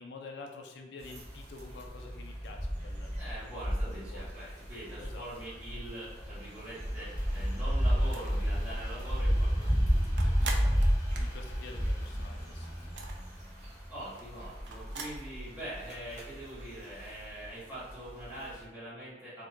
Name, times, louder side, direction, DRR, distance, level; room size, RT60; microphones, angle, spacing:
voice 1, 0.0-3.1 3.9-4.3 5.0-5.3 10.4-12.9, left 3 dB, 80° left, 3 dB, 0.4 m, -48 dB
sound 1, 1.0-18.6, equal, 40° right, 0.8 m, -32 dB
voice 2, 3.2-10.9 13.9-19.5, right 1 dB, 10° right, -10 dB, 1.5 m, -44 dB
Train, 4.1-16.7 17.4-17.5, left 1 dB, 20° left, 0.7 m, -55 dB
sound 2, 7.9-8.5 8.9-9.0 9.3-12.2 12.5-15.2, right 4 dB, 85° right, 0.5 m, -42 dB
4.3 x 2.3 x 2.5 m, 1.1 s
head